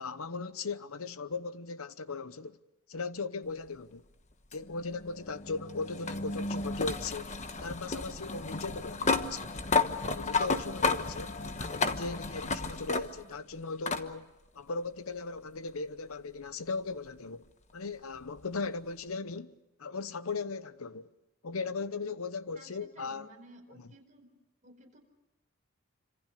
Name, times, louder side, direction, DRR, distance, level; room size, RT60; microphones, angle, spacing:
voice 1, 0.0-2.6 2.9-4.0 4.5-9.6 9.9-21.1 21.4-23.3, left 4 dB, 75° left, 0.9 m, -38 dB
sound 1, 4.5-13.4 13.9-14.1 15.4-15.5 18.4-18.5, left 4 dB, 35° left, 1.2 m, -32 dB
voice 2, 22.5-24.3 24.6-25.0, right 1 dB, 35° right, 4.7 m, -55 dB
27.0 x 26.0 x 6.6 m
head